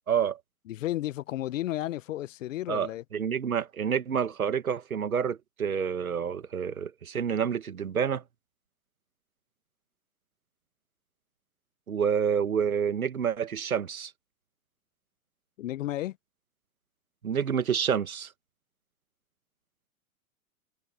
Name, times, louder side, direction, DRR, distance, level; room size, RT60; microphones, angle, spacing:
voice 1, 0.1-0.4 2.7-8.2 11.9-14.1 17.2-18.3, right 7 dB, 85° right, 1.8 m, -28 dB
voice 2, 0.7-3.0 15.6-16.1, left 14 dB, 65° left, 1.3 m, -33 dB
hypercardioid pair, 105°, 41 cm